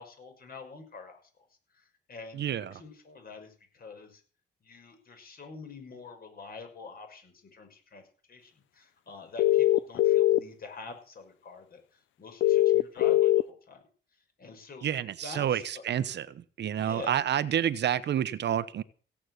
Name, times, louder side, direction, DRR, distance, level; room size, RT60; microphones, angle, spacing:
voice 1, 0.0-1.5 1.7-4.2 4.6-13.8 14.1-14.9 15.2-15.8 16.7-17.2, left 4 dB, 50° left, 6.0 m, -46 dB
sound 1, 9.4-10.4 12.4-13.4, left 14 dB, 75° left, 0.7 m, -21 dB
voice 2, 14.8-16.3 16.6-18.8, right 10 dB, 60° right, 1.0 m, -29 dB
16.5 x 8.6 x 8.0 m
cardioid pair, 90°, 20 cm